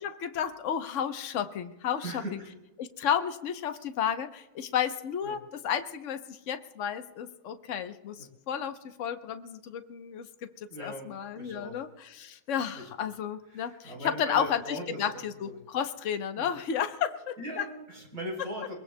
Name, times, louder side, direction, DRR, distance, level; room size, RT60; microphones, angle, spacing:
voice 1, 0.0-2.2 2.8-10.5 10.8-17.7, left 8 dB, 60° left, 8 dB, 0.7 m, -32 dB
voice 2, 2.0-2.5 5.2-5.4 8.2-8.3 10.7-11.8 12.7-12.9 13.5-15.5 16.4-16.5 17.4-18.7, right 1 dB, 40° right, -1 dB, 4.2 m, -40 dB
22.5 x 22.0 x 2.2 m, 1.1 s
omnidirectional pair, 2.3 m